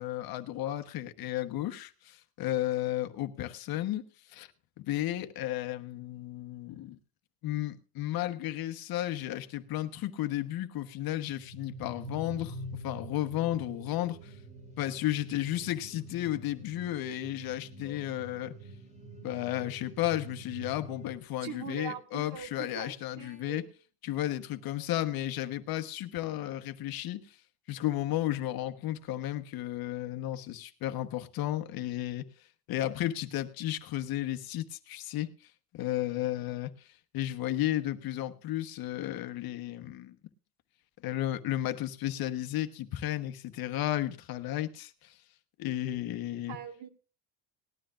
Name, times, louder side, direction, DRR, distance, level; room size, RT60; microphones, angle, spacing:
voice 1, 0.0-4.5 4.8-7.0 7.4-12.6 12.8-14.3 14.8-18.6 19.2-23.6 24.0-27.4 27.7-32.3 32.7-35.3 35.7-36.9 37.1-40.2 41.0-45.1 45.6-46.6, left 14 dB, 50° left, 1.2 m, -33 dB
sound 1, 11.2-21.1, right 1 dB, 15° right, 3.7 m, -46 dB
voice 2, 21.4-23.7 46.5-46.9, right 7 dB, 70° right, 2.4 m, -42 dB
19.5 x 12.5 x 2.5 m
cardioid pair, 160°, 47 cm